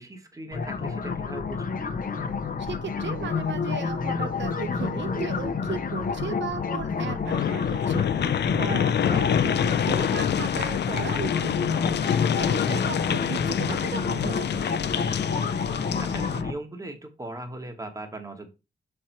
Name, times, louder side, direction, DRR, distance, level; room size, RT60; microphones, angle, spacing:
voice 1, 0.0-1.8 8.5-8.9 12.6-12.9 15.8-18.5, right 1 dB, 20° right, 6 dB, 1.2 m, -39 dB
sound 1, 0.5-16.5, left 5 dB, 50° left, 0.8 m, -29 dB
voice 2, 2.6-14.7, right 7 dB, 80° right, 9 dB, 0.7 m, -36 dB
sound 2, 7.3-16.4, left 9 dB, 70° left, 0.4 m, -27 dB
6.3 x 4.4 x 4.4 m, 0.28 s
wide cardioid pair, 140°, 19 cm